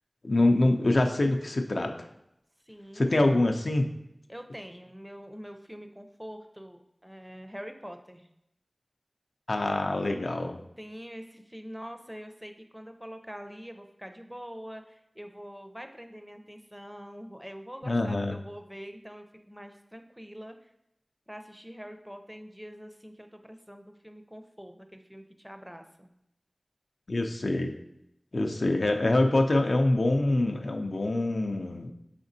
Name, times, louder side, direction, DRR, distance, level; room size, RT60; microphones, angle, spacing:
voice 1, 0.2-2.1 2.9-3.9 9.5-10.6 17.8-18.4 27.1-27.7 28.3-31.9, left 2 dB, 75° left, 4 dB, 0.4 m, -25 dB
voice 2, 2.7-3.3 4.3-8.3 10.8-20.6 21.3-26.1, equal, 10° right, 6 dB, 0.4 m, -44 dB
5.0 x 3.5 x 2.6 m, 0.82 s
wide cardioid pair, 45°, 0 cm